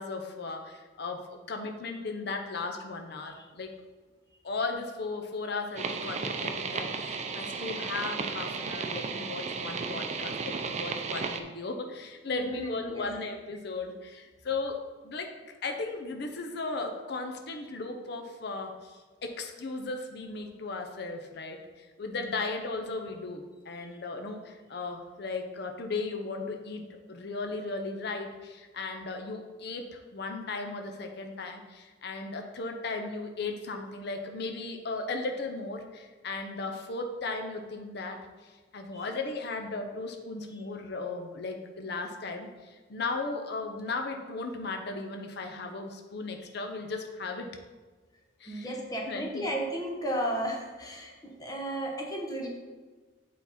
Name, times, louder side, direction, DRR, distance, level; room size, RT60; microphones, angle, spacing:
voice 1, 0.0-3.7 4.4-14.8 15.0-15.3 15.6-47.5 48.4-48.7 49.1-49.5, left 3 dB, 60° left, 4 dB, 0.7 m, -36 dB
sound 1, 5.8-11.4, right 4 dB, 40° right, 0.5 m, -34 dB
voice 2, 12.3-13.1 23.8-24.0 38.9-39.1 40.5-40.6 46.4-46.5 48.5-52.5, equal, 20° left, -1 dB, 1.0 m, -34 dB
8.3 x 4.1 x 4.2 m, 1.3 s
head